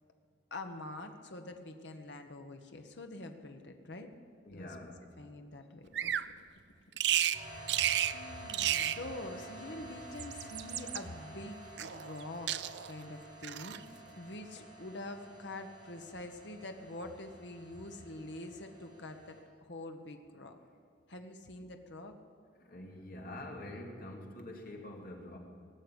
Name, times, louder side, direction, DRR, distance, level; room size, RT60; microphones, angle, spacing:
voice 1, 0.5-4.1 4.5-4.7 5.2-6.1 8.1-12.5 12.9-19.4 19.7-20.6 21.1-22.1, left 2 dB, 70° left, 5 dB, 1.2 m, -45 dB
voice 2, 4.4-5.0 22.6-25.4, left 1 dB, 50° left, 1 dB, 2.4 m, -45 dB
Bird vocalization bird call bird song, 5.9-6.3 7.0-7.4 7.7-8.2 8.5-9.0 10.0-11.0 11.8-12.2 12.5-12.9 13.4-13.8, right 11 dB, 65° right, 0.4 m, -32 dB
sound 1, 7.3-19.4, right 1 dB, 25° right, 4.4 m, -51 dB
18.5 x 6.8 x 9.8 m, 2.2 s
head